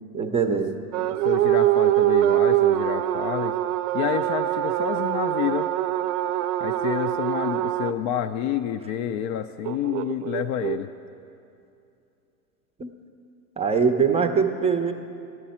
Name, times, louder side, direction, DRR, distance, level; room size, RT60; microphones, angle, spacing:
voice 1, 0.1-0.7 12.8-12.9 13.6-14.9, right 6 dB, 15° right, 7 dB, 0.6 m, -22 dB
sound 1, 0.9-7.9 9.7-10.8, right 14 dB, 55° right, 0.6 m, -23 dB
voice 2, 1.2-3.5 3.9-5.7 6.6-10.9, left 9 dB, 45° left, 8 dB, 0.5 m, -28 dB
15.0 x 11.0 x 4.3 m, 2.6 s
hypercardioid pair, 95°, 47 cm